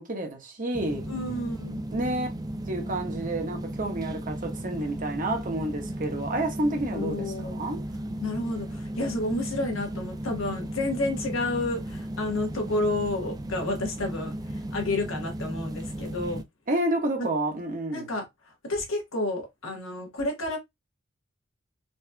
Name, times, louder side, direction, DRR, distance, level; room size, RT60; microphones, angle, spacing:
voice 1, 0.0-1.0 1.9-2.3 2.7-7.8 16.7-18.1, right 1 dB, 40° right, 1.0 m, -29 dB
sound 1, 0.7-16.4, right 1 dB, 20° right, 0.3 m, -35 dB
voice 2, 1.0-1.8 6.9-7.6 8.2-16.4 17.2-17.3 17.9-20.6, left 2 dB, 85° left, 1.3 m, -30 dB
4.1 x 2.7 x 2.2 m
head